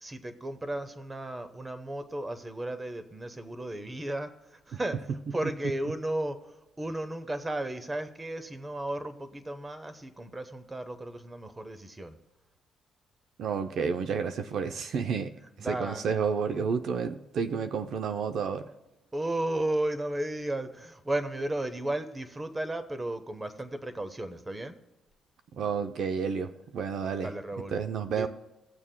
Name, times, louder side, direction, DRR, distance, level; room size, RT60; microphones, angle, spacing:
voice 1, 0.0-6.4 6.8-12.2 15.6-16.1 19.1-24.7 27.2-27.8 28.1-28.3, right 1 dB, 20° right, 10 dB, 0.9 m, -34 dB
voice 2, 13.4-15.3 15.7-18.7 25.5-27.3 27.7-28.3, right 6 dB, 70° right, 8 dB, 0.5 m, -30 dB
17.0 x 7.2 x 2.2 m, 0.97 s
cardioid pair, 90°, 0 cm